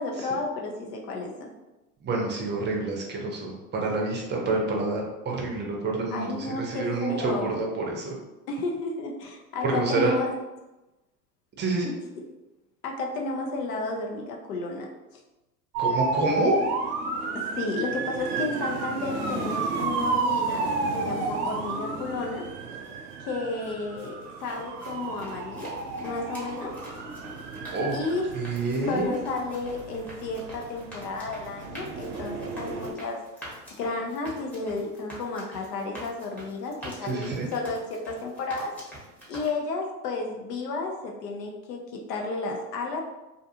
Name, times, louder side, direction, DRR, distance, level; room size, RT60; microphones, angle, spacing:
voice 1, 0.0-1.5 6.1-7.6 8.5-10.3 12.8-14.9 17.3-22.4 23.2-25.7 26.0-26.8 27.9-28.2 28.9-33.2 33.8-38.7 39.3-43.0, left 3 dB, 75° left, 1 dB, 0.7 m, -32 dB
voice 2, 2.0-8.1 9.6-10.1 11.6-11.9 15.8-16.6 27.7-28.0 28.3-29.1 37.0-37.5, right 3 dB, 20° right, 0 dB, 0.6 m, -28 dB
sound 1, 15.7-32.9, right 3 dB, 65° right, 0.6 m, -32 dB
sound 2, 24.2-39.5, equal, 5° left, 0.8 m, -45 dB
2.5 x 2.3 x 2.7 m, 1.0 s
hypercardioid pair, 90°, 49 cm